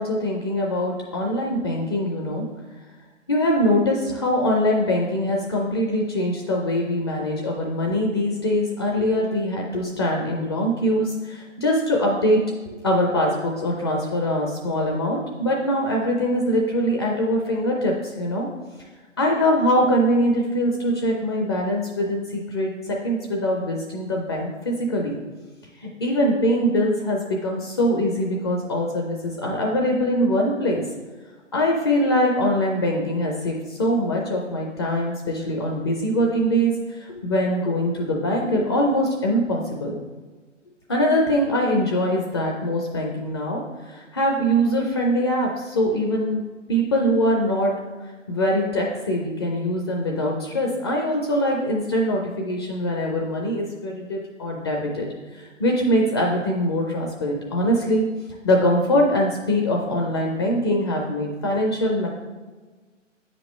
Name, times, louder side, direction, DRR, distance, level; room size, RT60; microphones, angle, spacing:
voice 1, 0.0-2.4 3.3-12.4 12.7-18.5 19.2-25.2 25.8-30.8 31.5-40.0 40.9-46.4 46.7-47.7 48.0-55.1 55.3-58.0 58.4-62.1, equal, 20° left, 0 dB, 0.5 m, -23 dB
8.9 x 5.2 x 3.2 m, 1.3 s
figure-of-eight pair, 130°, 37 cm